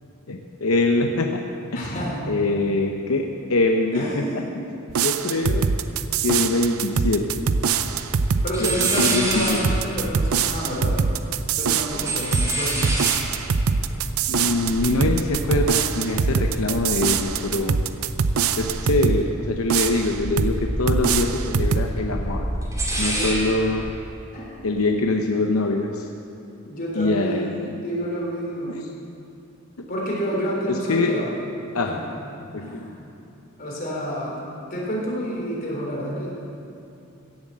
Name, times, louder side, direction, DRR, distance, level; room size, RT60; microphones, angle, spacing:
voice 1, 0.3-1.4 1.7-4.2 5.0-5.7 6.2-7.5 8.6-9.6 14.3-17.8 18.6-22.5 23.0-23.9 24.6-26.1 26.9-27.7 28.7-28.8 30.7-31.1 31.7-31.9 32.5-32.8, left 2 dB, 85° left, 3 dB, 0.8 m, -24 dB
voice 2, 1.7-2.2 3.9-4.5 8.4-11.0 11.6-13.0 14.4-14.8 23.1-23.3 24.3-24.8 26.6-28.8 29.9-31.3 31.9-32.0 32.6-33.1 33.6-36.3, equal, 45° left, -4 dB, 3.5 m, -29 dB
sound 1, 4.9-19.2 19.7-20.6 20.9-21.9, right 5 dB, 85° right, 0.6 m, -23 dB
sound 2, 8.2-8.3 8.5-11.3 11.6-17.9 18.1-19.2 19.5-23.8, right 1 dB, 15° right, 2.4 m, -30 dB
16.0 x 7.4 x 7.5 m, 2.8 s
head